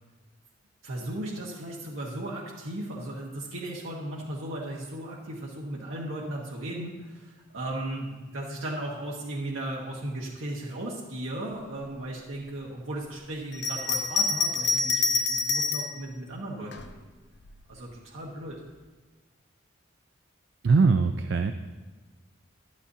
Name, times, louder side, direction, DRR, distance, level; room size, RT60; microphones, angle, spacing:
voice 1, 0.8-17.0 17.7-18.6, right 1 dB, 80° right, -4 dB, 1.3 m, -36 dB
Bell, 13.5-16.0 16.7-17.6, left 4 dB, 55° left, 0.6 m, -27 dB
voice 2, 20.6-21.5, right 4 dB, 60° right, 7 dB, 0.4 m, -21 dB
11.5 x 11.5 x 2.7 m, 1.3 s
head